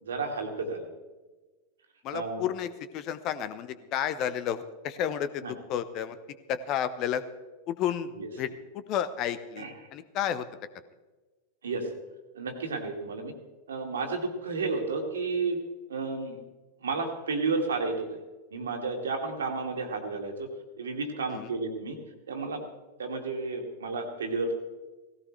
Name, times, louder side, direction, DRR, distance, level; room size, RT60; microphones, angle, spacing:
voice 1, 0.0-0.9 2.1-2.4 5.4-5.5 8.2-8.3 9.6-9.7 11.6-11.9 12.3-13.3 13.7-15.6 15.9-16.4 16.8-18.1 18.5-20.5 20.8-22.0 22.3-22.6 23.0-24.5, right 4 dB, 65° right, 4 dB, 2.2 m, -32 dB
voice 2, 2.0-5.4 5.7-6.2 6.5-7.2 7.7-8.1 8.4-8.5 8.9-10.5 21.3-21.5, left 9 dB, 40° left, 13 dB, 0.9 m, -31 dB
18.0 x 16.5 x 3.3 m, 1.2 s
figure-of-eight pair, 90°, 0 cm